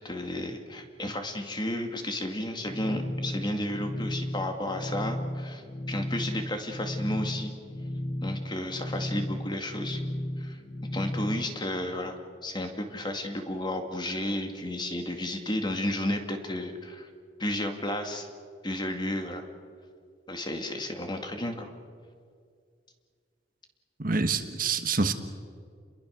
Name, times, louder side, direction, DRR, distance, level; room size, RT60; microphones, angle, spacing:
voice 1, 0.0-7.5 8.2-10.0 10.4-10.6 10.9-17.1 17.4-18.3 18.6-19.5 20.3-21.7, left 1 dB, 25° left, 5 dB, 2.3 m, -32 dB
sound 1, 2.6-11.4, left 1 dB, 50° left, 3.2 m, -34 dB
voice 2, 24.0-25.1, right 4 dB, 50° right, 8 dB, 1.4 m, -26 dB
29.5 x 22.0 x 6.5 m, 2.1 s
head